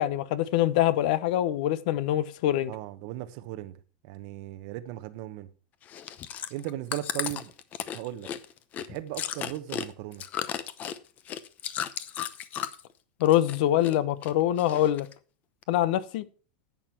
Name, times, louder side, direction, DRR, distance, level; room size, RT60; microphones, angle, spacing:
voice 1, 0.0-2.7 13.2-15.1 15.7-16.2, left 13 dB, 65° left, 0.9 m, -24 dB
voice 2, 2.7-3.7 4.0-5.5 6.5-7.5 7.9-8.3 8.9-10.2, right 14 dB, 55° right, 0.9 m, -37 dB
Chewing mastication, 5.8-12.9 13.2-14.0 14.2-15.1 15.6-15.7, left 9 dB, 30° left, 0.8 m, -35 dB
11.0 x 7.9 x 4.5 m
supercardioid pair, 145°, 5 cm